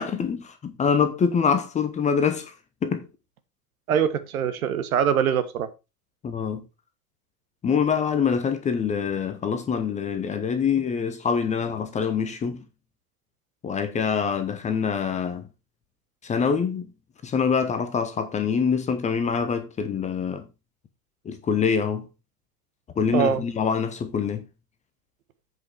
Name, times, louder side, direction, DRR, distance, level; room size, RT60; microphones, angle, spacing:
voice 1, 0.0-2.5 2.8-3.1 6.2-6.6 7.6-12.6 13.6-15.4 16.2-16.9 17.2-20.5 21.2-22.1 23.0-24.4, left 6 dB, 15° left, 0.9 m, -25 dB
voice 2, 3.9-5.7 23.1-23.4, right 8 dB, 60° right, 1.3 m, -23 dB
8.0 x 5.6 x 4.5 m
figure-of-eight pair, 100°, 48 cm